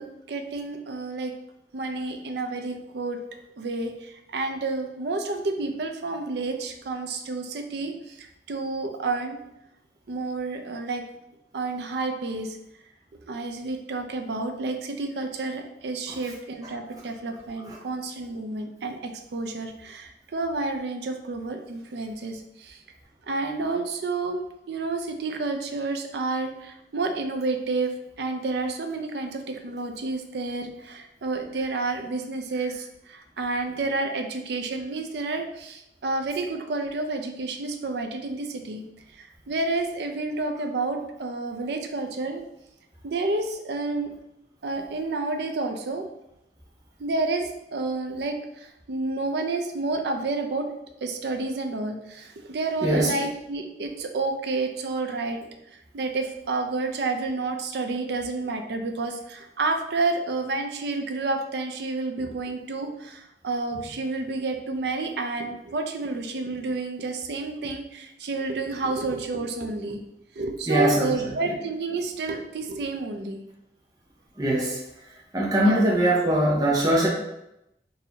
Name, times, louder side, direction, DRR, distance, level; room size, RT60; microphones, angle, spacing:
voice 1, 0.0-1.3 1.7-3.2 3.6-9.4 10.1-11.0 11.5-12.6 13.3-22.8 23.3-38.8 39.1-42.4 43.0-44.1 44.6-46.1 47.0-50.7 51.0-55.5 55.9-70.0 70.4-73.4 75.6-75.8, right 3 dB, 70° right, 4 dB, 0.5 m, -30 dB
voice 2, 70.7-71.5 74.4-74.8 75.3-77.1, right 1 dB, 20° right, -4 dB, 0.6 m, -22 dB
4.0 x 2.6 x 2.8 m, 0.85 s
head